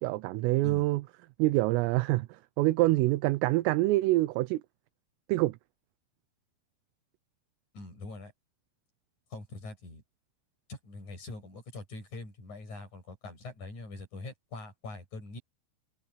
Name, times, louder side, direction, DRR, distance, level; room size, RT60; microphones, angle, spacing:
voice 1, 0.0-1.0 1.4-2.3 2.6-4.6 5.3-5.6, right 19 dB, 80° right, 3.3 m, -25 dB
voice 2, 7.7-8.3 9.3-10.0 10.7-15.4, left 2 dB, 35° left, 9.0 m, -43 dB
omnidirectional pair, 6.0 m